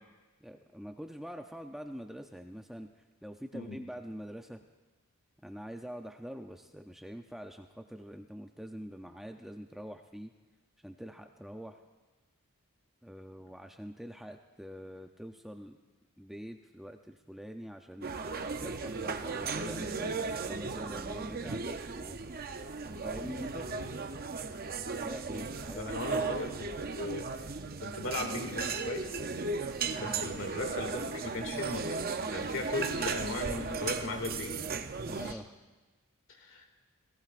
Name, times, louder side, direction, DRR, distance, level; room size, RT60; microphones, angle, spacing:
voice 1, 0.4-2.9 3.2-4.6 5.4-10.3 10.8-11.8 13.0-15.8 16.2-18.1 18.6-22.2 22.8-23.7 25.0-25.9 29.9-30.2 35.0-35.5, equal, ahead, 4 dB, 0.5 m, -45 dB
sound 1, 18.0-35.3, right 4 dB, 40° right, 0.6 m, -36 dB
voice 2, 25.7-27.5 27.8-29.2 30.0-31.9 32.3-34.7 35.1-35.4 36.4-36.6, left 2 dB, 60° left, 3 dB, 2.2 m, -37 dB
27.0 x 18.0 x 2.5 m, 1.2 s
head